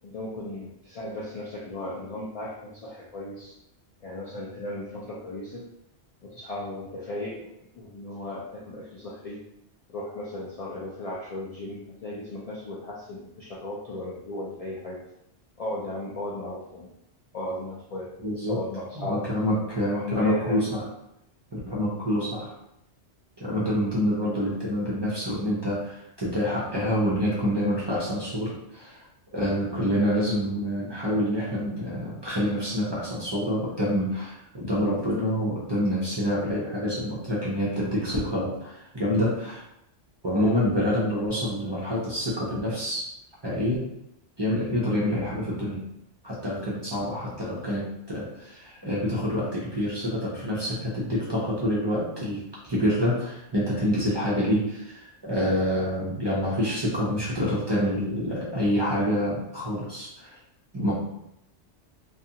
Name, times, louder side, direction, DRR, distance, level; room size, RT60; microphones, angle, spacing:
voice 1, 0.0-3.6 4.0-5.7 6.2-9.5 9.9-15.0 15.6-16.9 17.3-18.1 18.5-19.3 19.8-20.6, left 1 dB, 70° left, -5 dB, 0.3 m, -36 dB
voice 2, 18.2-18.6 19.0-20.8 21.5-22.5 23.4-29.0 29.3-39.6 40.2-43.1 43.4-43.9 44.4-45.8 46.2-60.3 60.7-60.9, equal, 35° right, -7 dB, 0.4 m, -27 dB
2.5 x 2.4 x 2.7 m, 0.81 s
omnidirectional pair, 1.2 m